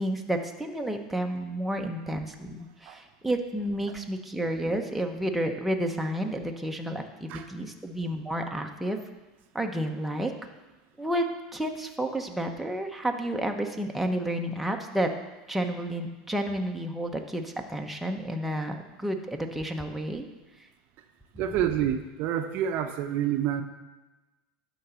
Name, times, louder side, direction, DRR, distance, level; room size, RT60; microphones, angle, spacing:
voice 1, 0.0-9.0 9.5-10.3 11.0-15.1 15.5-20.3, right 1 dB, 5° right, 2 dB, 0.9 m, -31 dB
voice 2, 21.3-23.6, right 10 dB, 55° right, 7 dB, 0.7 m, -28 dB
11.0 x 4.0 x 6.9 m, 1.1 s
supercardioid pair, 120°, 4 cm